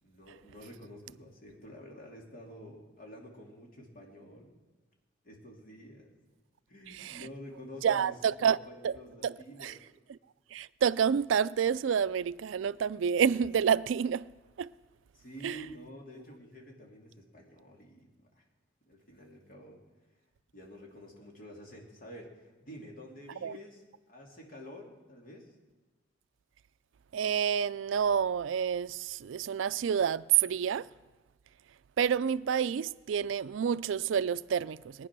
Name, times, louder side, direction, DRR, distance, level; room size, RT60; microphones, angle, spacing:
voice 1, 0.0-4.5 5.2-6.1 6.7-9.8 15.1-18.4 18.9-19.8 20.5-25.5, equal, 50° left, 2.9 m, -49 dB
voice 2, 7.8-8.6 8.8-8.9 9.2-9.3 9.6-9.7 10.5-14.3 14.6-14.7 15.4-15.6 23.4-23.5 27.1-30.9 32.0-35.1, right 7 dB, 80° right, 0.4 m, -28 dB
20.5 x 9.8 x 6.1 m
head